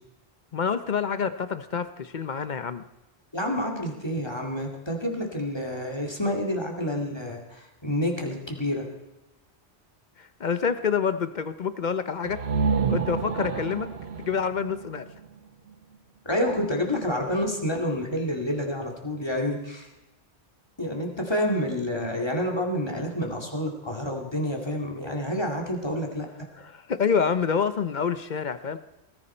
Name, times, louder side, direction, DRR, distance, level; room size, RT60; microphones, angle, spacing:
voice 1, 0.5-2.8 10.2-12.4 12.9-13.9 14.2-15.1 26.6-28.8, left 6 dB, 50° left, 12 dB, 0.8 m, -27 dB
voice 2, 3.3-8.8 16.3-19.9 20.8-26.3, left 1 dB, 25° left, 1 dB, 2.3 m, -28 dB
sound 1, 12.2-16.0, right 5 dB, 70° right, 1.3 m, -29 dB
19.5 x 14.0 x 4.4 m, 0.95 s
omnidirectional pair, 1.1 m